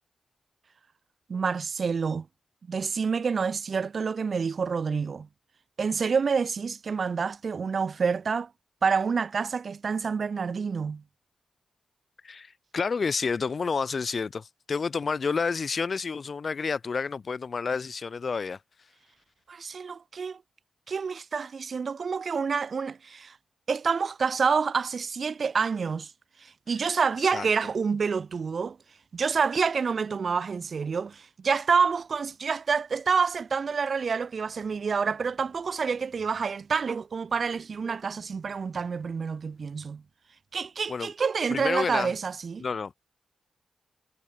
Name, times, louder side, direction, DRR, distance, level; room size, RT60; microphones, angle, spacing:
voice 1, 1.3-2.3 2.7-5.3 5.8-8.5 8.8-11.0 19.5-20.4 20.9-23.4 23.7-26.1 26.4-28.8 29.1-40.0 40.5-42.6, right 5 dB, 60° right, 0.3 m, -28 dB
voice 2, 12.2-18.6 27.3-27.5 40.9-41.1 41.5-42.1 42.6-42.9, left 5 dB, 55° left, 0.4 m, -29 dB
supercardioid pair, 40°, 0 cm